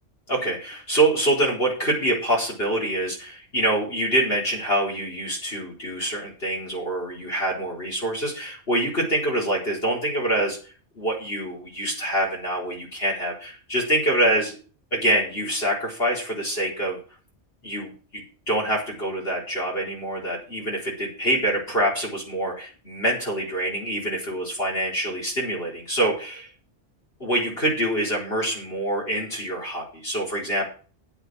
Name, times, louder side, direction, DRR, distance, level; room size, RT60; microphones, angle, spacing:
voice 1, 0.3-14.6 14.9-17.0 17.6-26.5 27.2-30.7, right 1 dB, 55° left, -4 dB, 4.6 m, -25 dB
10.0 x 7.9 x 6.3 m, 0.38 s
omnidirectional pair, 1.2 m